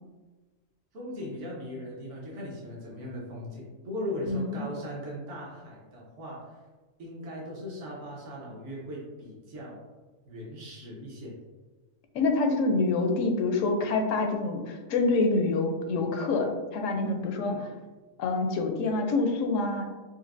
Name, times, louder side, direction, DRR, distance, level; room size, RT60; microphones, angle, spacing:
voice 1, 0.9-6.6 7.0-9.8 10.2-11.3 17.4-17.7, left 1 dB, 70° right, -4 dB, 1.3 m, -38 dB
voice 2, 4.3-4.6 12.1-17.5 18.2-19.9, left 3 dB, 85° left, 4 dB, 1.0 m, -26 dB
4.4 x 2.6 x 2.5 m, 1.3 s
omnidirectional pair, 1.3 m